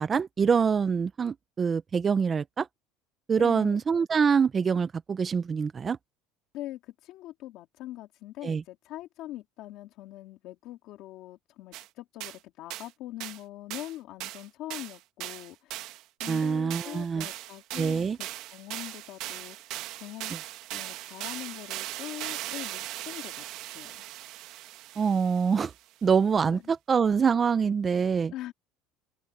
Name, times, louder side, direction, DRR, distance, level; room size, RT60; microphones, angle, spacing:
voice 1, 0.0-2.7 3.3-6.0 8.4-8.6 16.3-17.3 17.8-18.2 25.0-25.7 26.0-28.3, right 6 dB, 20° right, 0.3 m, -25 dB
voice 2, 3.4-3.8 6.5-15.8 16.2-20.3 20.7-23.5 23.7-24.0 26.5-26.7 28.3-28.5, left 15 dB, 50° left, 2.2 m, -42 dB
sound 1, 11.7-11.9 12.2-12.4 12.7-12.9 13.2-13.4 13.7-14.0 14.2-25.7, right 15 dB, 50° right, 1.1 m, -39 dB
open air
cardioid pair, 170°, 0 cm